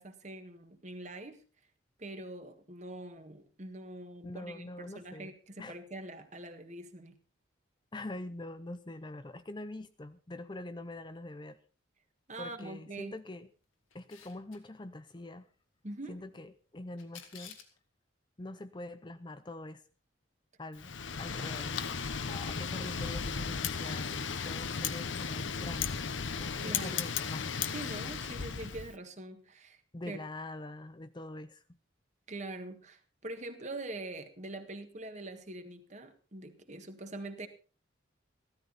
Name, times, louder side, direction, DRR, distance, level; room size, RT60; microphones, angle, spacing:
voice 1, 0.0-1.4 2.0-7.2 12.3-13.2 15.8-16.2 26.6-27.0 27.7-29.8 30.1-30.2 32.3-37.5, right 2 dB, 35° right, 7 dB, 1.6 m, -44 dB
voice 2, 4.2-5.3 5.6-5.8 7.9-11.6 12.4-13.5 13.9-15.5 16.1-17.6 18.4-19.8 20.6-20.9 21.2-21.8 22.2-26.0 26.4-27.7 29.9-31.6, left 2 dB, 25° left, 11 dB, 0.6 m, -44 dB
Camera, 13.9-14.6 17.0-17.8, left 8 dB, 90° left, 2.4 m, -51 dB
Wind, 20.8-28.9, left 6 dB, 70° left, 0.9 m, -35 dB
15.0 x 13.5 x 4.1 m, 0.35 s
head